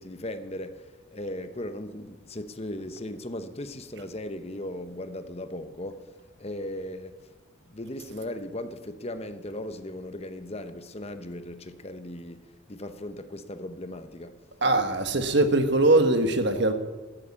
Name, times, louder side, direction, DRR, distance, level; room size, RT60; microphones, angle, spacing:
voice 1, 0.0-6.1 6.4-7.2 7.7-14.4, left 1 dB, 30° left, 0.9 m, -37 dB
voice 2, 14.6-16.7, right 2 dB, 55° right, 1.5 m, -21 dB
13.0 x 12.5 x 8.6 m
head